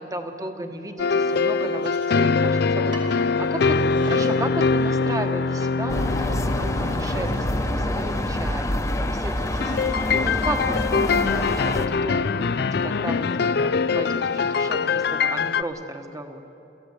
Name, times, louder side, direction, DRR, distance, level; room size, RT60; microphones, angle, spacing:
voice 1, 0.0-2.9 3.4-3.8 4.0-8.7 9.0-9.7 10.1-16.4, right 1 dB, 20° right, 6 dB, 1.3 m, -34 dB
sound 1, 1.0-8.7 9.6-15.6, left 4 dB, 55° left, 0.5 m, -23 dB
sound 2, 1.3-2.5 2.9-3.2 3.8-4.4 4.8-5.3 5.8-5.9 6.5-8.1 9.3-10.0 10.5-11.0, right 3 dB, 70° right, 3.7 m, -46 dB
sound 3, 5.9-11.9, left 1 dB, 15° left, 1.0 m, -26 dB
25.0 x 15.5 x 8.1 m, 2.9 s
head